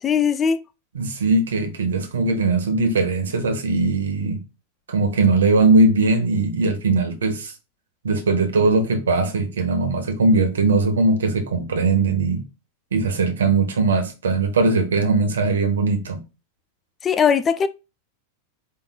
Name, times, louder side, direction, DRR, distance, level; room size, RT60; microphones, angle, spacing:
voice 1, 0.0-0.6 17.0-17.7, left 7 dB, 25° left, 0.3 m, -19 dB
voice 2, 0.9-4.4 4.9-7.5 8.0-12.4 12.9-16.2, right 3 dB, 65° right, 1.0 m, -20 dB
4.5 x 3.7 x 2.3 m
figure-of-eight pair, 90°, 0 cm